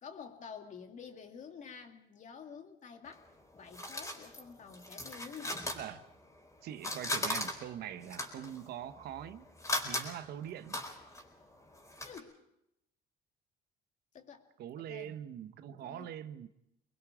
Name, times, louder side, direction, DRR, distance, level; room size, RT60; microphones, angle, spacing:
voice 1, 0.0-5.7 12.0-12.4 14.1-14.5 14.8-15.2 15.8-16.1, left 6 dB, 45° left, 2.4 m, -49 dB
sound 1, 3.1-6.5 6.7-12.2, left 1 dB, 20° left, 4.2 m, -39 dB
voice 2, 6.6-9.5 9.8-10.8 14.6-16.5, right 10 dB, 70° right, 1.1 m, -43 dB
25.5 x 21.5 x 4.9 m
cardioid pair, 110°, 17 cm